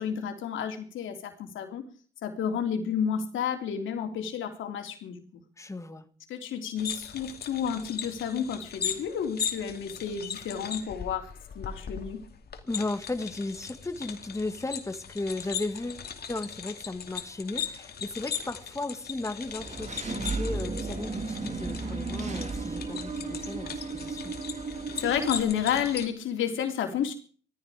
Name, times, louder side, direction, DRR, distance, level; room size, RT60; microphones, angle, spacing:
voice 1, 0.0-1.9 2.2-5.2 6.3-11.3 11.5-12.2 25.0-27.1, left 8 dB, 75° left, 5 dB, 3.2 m, -31 dB
voice 2, 5.6-6.1 12.6-24.3, left 2 dB, 15° left, 9 dB, 1.8 m, -35 dB
sound 1, 6.8-26.1, left 7 dB, 50° left, 2.4 m, -38 dB
Engine / Mechanisms, 19.5-25.4, right 4 dB, 35° right, 2.2 m, -34 dB
17.5 x 14.5 x 5.0 m, 0.43 s
cardioid pair, 90°, 20 cm